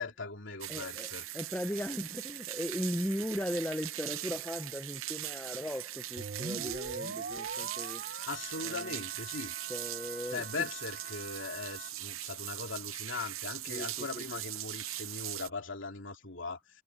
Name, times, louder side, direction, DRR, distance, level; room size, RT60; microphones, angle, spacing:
voice 1, 0.0-1.3 8.3-9.5 10.3-16.8, left 4 dB, 60° left, 3.4 m, -39 dB
sound 1, 0.6-15.5, right 14 dB, 80° right, 0.7 m, -41 dB
voice 2, 0.7-8.0 8.6-9.0 9.7-10.7 13.7-14.4, equal, 10° left, 0.9 m, -38 dB
sound 2, 6.2-11.9, right 4 dB, 55° right, 1.0 m, -43 dB
head